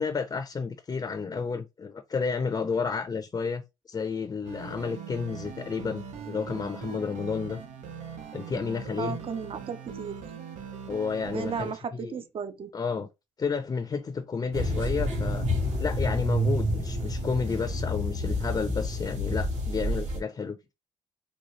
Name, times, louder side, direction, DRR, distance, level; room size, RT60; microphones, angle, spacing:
voice 1, 0.0-7.6 8.3-9.2 10.9-12.2 12.7-13.1 13.4-15.4 15.8-20.6, left 5 dB, 30° left, 0.5 m, -31 dB
sound 1, 4.4-11.7, right 7 dB, 85° right, 0.8 m, -41 dB
voice 2, 9.0-10.2 11.3-12.7, right 6 dB, 50° right, 0.6 m, -34 dB
sound 2, 14.5-20.2, equal, 70° right, 1.7 m, -29 dB
4.0 x 2.3 x 3.1 m
cardioid pair, 80°, 12 cm